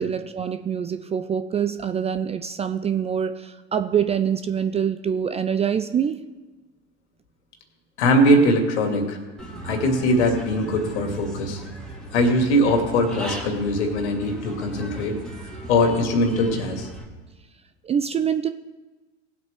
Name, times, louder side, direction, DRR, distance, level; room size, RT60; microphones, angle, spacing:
voice 1, 0.0-6.2 17.8-18.5, right 8 dB, 20° right, 10 dB, 0.4 m, -25 dB
voice 2, 8.0-9.2 9.6-11.6 12.1-15.2 15.7-16.9, left 1 dB, 70° left, 3 dB, 2.6 m, -21 dB
Human voice / Bird, 9.4-17.0, right 1 dB, ahead, 2.5 m, -37 dB
18.5 x 7.9 x 3.6 m, 1.2 s
hypercardioid pair, 85°, 36 cm